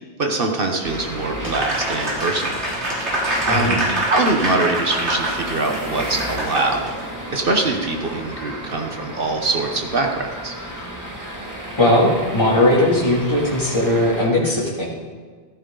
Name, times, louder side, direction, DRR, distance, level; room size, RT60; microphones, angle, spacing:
voice 1, 0.2-2.6 3.5-3.8 4.1-6.9 7.3-10.5, right 3 dB, 55° right, 2 dB, 1.4 m, -23 dB
sound 1, 0.8-14.3, equal, 15° right, 2.2 m, -33 dB
Applause, 1.4-7.0, right 1 dB, 85° right, 3.3 m, -25 dB
voice 2, 3.5-3.8 11.8-14.9, left 1 dB, 25° left, -5 dB, 3.0 m, -18 dB
14.5 x 14.0 x 4.0 m, 1.5 s
omnidirectional pair, 1.1 m